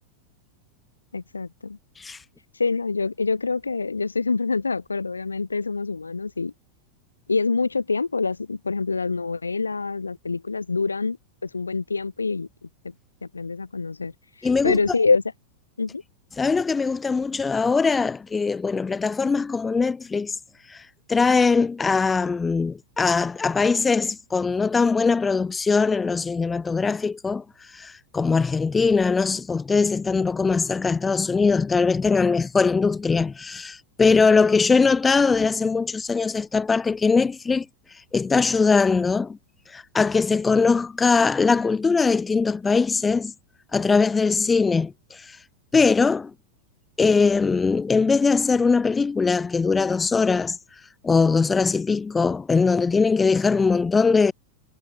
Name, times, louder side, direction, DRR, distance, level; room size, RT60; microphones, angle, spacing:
voice 1, 1.1-1.8 2.5-6.5 7.3-11.2 11.4-12.7 13.2-14.1 14.4-15.2 15.8-16.0, left 4 dB, 80° left, 5.1 m, -26 dB
voice 2, 14.4-14.8 16.4-20.4 20.7-39.4 39.7-43.3 43.7-45.4 45.7-46.3 47.0-50.6 51.0-54.3, left 4 dB, 15° left, 0.4 m, -21 dB
figure-of-eight pair, 90°, 0 cm